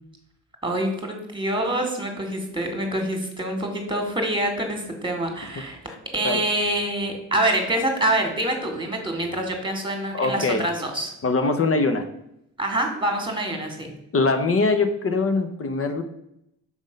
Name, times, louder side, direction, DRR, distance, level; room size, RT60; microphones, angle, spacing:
voice 1, 0.6-5.8 6.1-11.1 12.6-13.9, right 1 dB, 15° right, 3 dB, 2.1 m, -26 dB
voice 2, 10.1-10.7 11.2-12.1 14.1-16.0, left 3 dB, 40° left, 8 dB, 0.9 m, -22 dB
6.4 x 3.6 x 5.3 m, 0.80 s
supercardioid pair, 65°, 35 cm